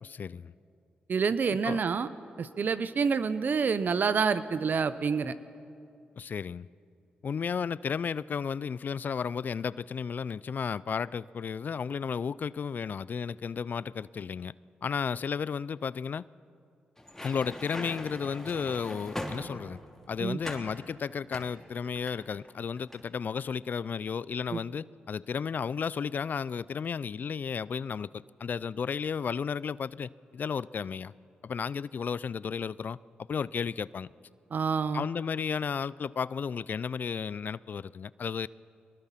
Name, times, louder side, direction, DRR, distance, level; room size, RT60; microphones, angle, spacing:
voice 1, 0.0-0.5 1.5-1.8 6.2-6.7 7.2-14.5 14.8-16.2 17.2-19.8 20.1-31.1 31.4-33.0 33.3-34.1 34.9-38.5, left 6 dB, 55° left, 0.4 m, -33 dB
voice 2, 1.1-2.1 2.4-5.3 20.2-20.4 24.5-24.6 34.5-35.1, right 5 dB, 55° right, 0.9 m, -28 dB
sound 1, 17.0-19.9 20.4-20.7 21.3-22.5 22.8-23.0, left 1 dB, 10° left, 3.1 m, -40 dB
23.0 x 20.0 x 5.8 m
supercardioid pair, 55°, 4 cm